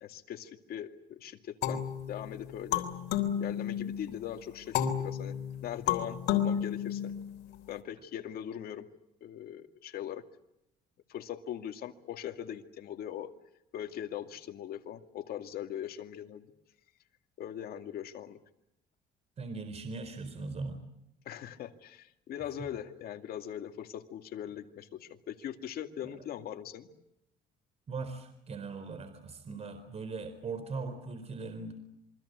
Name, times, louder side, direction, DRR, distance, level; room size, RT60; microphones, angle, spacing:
voice 1, 0.0-2.9 3.4-5.4 5.6-7.1 7.7-8.8 9.2-10.2 11.1-13.3 13.7-16.4 17.4-18.4 21.3-26.9, left 10 dB, 65° left, 6 dB, 2.3 m, -40 dB
sound 1, 1.6-4.1 4.7-7.5, left 9 dB, 80° left, 3.4 m, -32 dB
voice 2, 19.4-20.8 27.9-31.7, right 4 dB, 40° right, 10 dB, 4.2 m, -39 dB
27.5 x 23.5 x 8.2 m, 0.83 s
cardioid pair, 110°, 17 cm